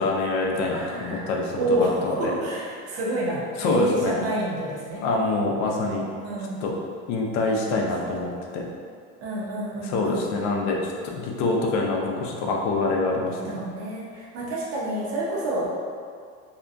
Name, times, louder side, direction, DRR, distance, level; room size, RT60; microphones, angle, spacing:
voice 1, 0.0-2.4 3.6-4.2 5.0-6.1 6.6-6.7 7.1-8.6 9.8-13.4, left 3 dB, 55° left, 0 dB, 0.5 m, -25 dB
voice 2, 0.7-1.3 1.5-5.0 6.2-6.6 8.2-8.3 9.2-10.2 13.3-15.7, right 1 dB, 45° right, -6 dB, 0.7 m, -28 dB
2.8 x 2.2 x 2.5 m, 2.1 s
supercardioid pair, 125°, 33 cm